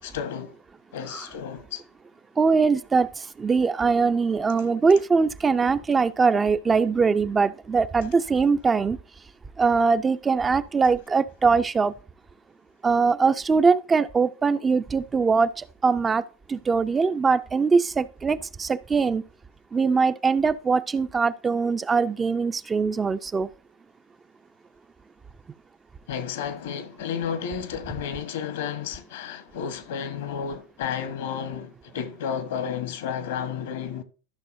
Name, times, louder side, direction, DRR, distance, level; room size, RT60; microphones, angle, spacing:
voice 1, 0.0-0.5 0.9-1.8 26.1-34.0, left 7 dB, 70° left, 1.1 m, -32 dB
voice 2, 2.4-3.1 3.4-9.0 9.6-11.9 12.8-16.2 16.5-19.2 19.7-23.5, right 4 dB, 20° right, 0.4 m, -22 dB
13.0 x 6.0 x 2.6 m
hypercardioid pair, 95°, 0 cm